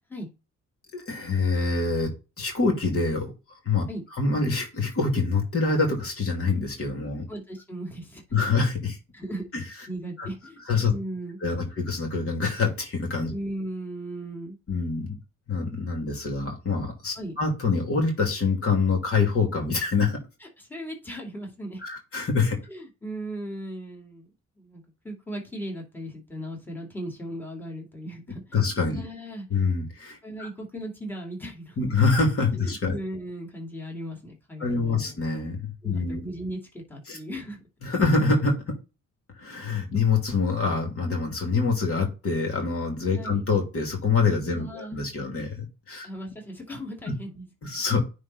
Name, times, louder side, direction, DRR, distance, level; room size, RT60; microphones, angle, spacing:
voice 1, 0.9-2.1 2.4-3.3 3.6-3.8 4.2-7.2 8.3-9.0 9.5-9.6 10.2-10.3 10.7-10.9 11.4-13.3 14.7-15.2 15.5-20.2 21.8-22.6 28.5-29.0 29.5-30.5 31.8-33.0 34.6-36.2 37.1-37.2 37.8-38.8 39.4-46.1 47.6-48.0, left 4 dB, 50° left, 2 dB, 2.6 m, -25 dB
voice 2, 7.3-8.2 9.1-9.4 9.9-11.4 13.3-14.6 17.1-17.3 20.4-21.8 22.7-24.3 24.6-28.4 29.0-29.5 30.2-31.8 32.6-35.2 35.8-37.6 43.2-43.4 44.5-45.0 46.0-47.8, right 1 dB, 5° left, -1 dB, 2.5 m, -37 dB
9.6 x 3.4 x 4.1 m, 0.30 s
cardioid pair, 90°, 30 cm